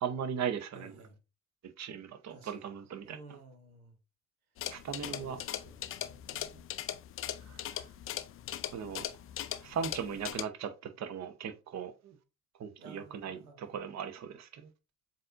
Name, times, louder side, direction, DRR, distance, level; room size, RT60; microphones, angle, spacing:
voice 1, 0.0-0.9 1.8-3.2 4.7-5.4 7.4-7.9 8.7-9.0 9.6-12.1 12.6-14.7, right 7 dB, 40° right, 0.8 m, -38 dB
voice 2, 0.7-1.2 2.3-2.8 3.0-3.9 5.0-6.7 12.8-13.7, right 3 dB, 90° right, 0.9 m, -54 dB
sound 1, 4.6-10.4, left 11 dB, 35° left, 0.4 m, -40 dB
7.5 x 2.7 x 2.5 m
figure-of-eight pair, 45°, 43 cm